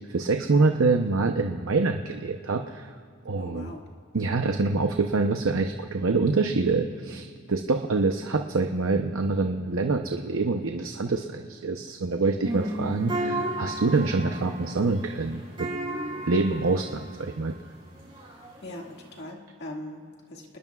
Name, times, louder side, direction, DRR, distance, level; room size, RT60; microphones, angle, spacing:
voice 1, 0.1-2.9 3.2-3.7 4.1-15.7 16.3-17.5, right 3 dB, 70° right, 5 dB, 0.8 m, -25 dB
voice 2, 3.4-3.9 18.6-20.6, left 1 dB, 50° left, 0 dB, 2.0 m, -40 dB
sound 1, 12.4-19.2, right 1 dB, 25° right, 5.4 m, -34 dB
28.5 x 20.0 x 2.4 m, 2.3 s
head